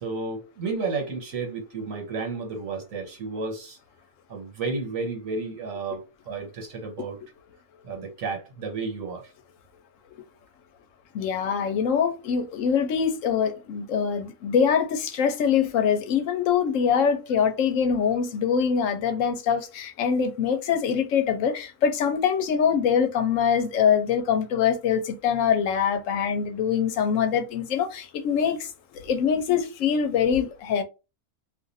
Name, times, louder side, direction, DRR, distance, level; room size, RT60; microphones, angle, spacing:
voice 1, 0.0-3.8 4.3-7.2 7.8-9.3, right 4 dB, 70° right, 1.4 m, -32 dB
voice 2, 11.1-30.8, left 7 dB, 70° left, 1.0 m, -24 dB
2.5 x 2.5 x 4.0 m
omnidirectional pair, 1.5 m